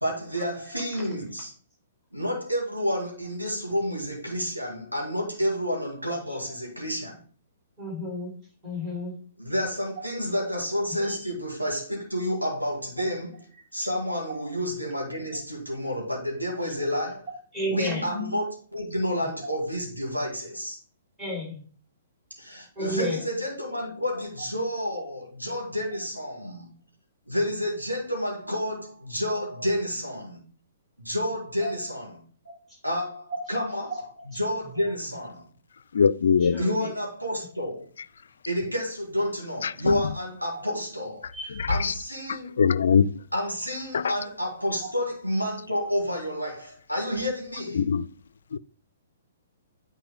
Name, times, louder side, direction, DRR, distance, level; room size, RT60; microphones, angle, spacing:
voice 1, 0.0-1.5 2.1-7.2 9.4-13.4 13.7-17.2 17.6-20.8 22.4-26.7 27.3-30.4 31.0-32.5 32.8-34.0 34.2-35.4 36.6-37.8 38.5-42.5 43.3-47.9, equal, 90° right, 2.8 m, -30 dB
voice 2, 7.8-8.3 8.6-9.2 17.5-18.3 21.2-21.6 22.8-23.2 31.6-31.7 33.3-33.4 33.9-34.0 34.3-34.4 36.4-36.9 41.3-41.7, left 1 dB, 15° right, 3.9 m, -32 dB
voice 3, 36.0-36.6 42.6-43.0 47.9-48.0 48.5-48.6, left 6 dB, 60° left, 0.3 m, -20 dB
9.7 x 4.4 x 3.7 m
figure-of-eight pair, 120°, 0 cm